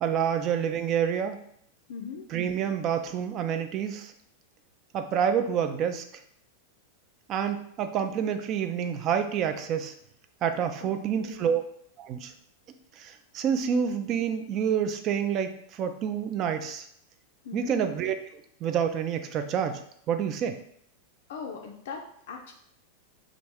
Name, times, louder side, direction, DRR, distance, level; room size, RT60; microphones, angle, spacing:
voice 1, 0.0-1.4 2.3-4.1 4.9-6.0 7.3-9.9 10.4-11.7 12.0-12.3 13.0-16.9 17.5-18.2 18.6-19.8 20.1-20.6, right 8 dB, 35° right, 8 dB, 0.4 m, -28 dB
voice 2, 1.9-2.3 10.8-10.9 11.2-11.5 17.4-17.8 21.3-22.5, left 5 dB, 55° left, 1 dB, 0.4 m, -40 dB
2.9 x 2.4 x 3.4 m, 0.69 s
figure-of-eight pair, 90°, 0 cm